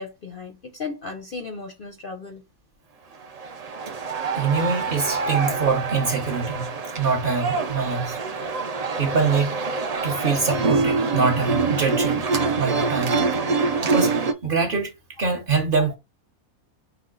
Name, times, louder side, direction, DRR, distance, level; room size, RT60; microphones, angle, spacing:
voice 1, 0.0-2.4, left 4 dB, 55° left, 0.6 m, -35 dB
sound 1, 3.2-14.3, right 4 dB, 70° right, 0.3 m, -25 dB
voice 2, 4.3-6.7 7.0-8.2 9.0-9.6 10.0-12.2 12.6-13.2 13.8-14.2 14.4-16.0, right 4 dB, 45° right, 0.9 m, -24 dB
5.1 x 2.3 x 3.7 m
omnidirectional pair, 1.5 m